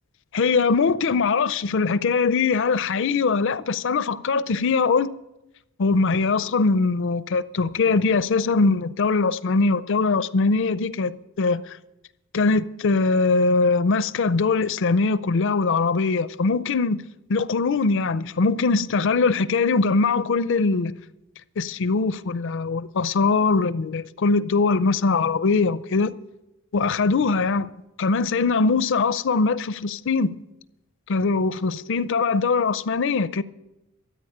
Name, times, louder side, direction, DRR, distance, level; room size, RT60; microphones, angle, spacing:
voice 1, 0.3-5.1 5.8-11.8 12.3-17.0 17.3-21.0 21.6-26.2 26.7-27.7 28.0-30.4 31.1-33.4, left 4 dB, 55° left, 0.5 m, -22 dB
13.5 x 9.2 x 8.6 m
head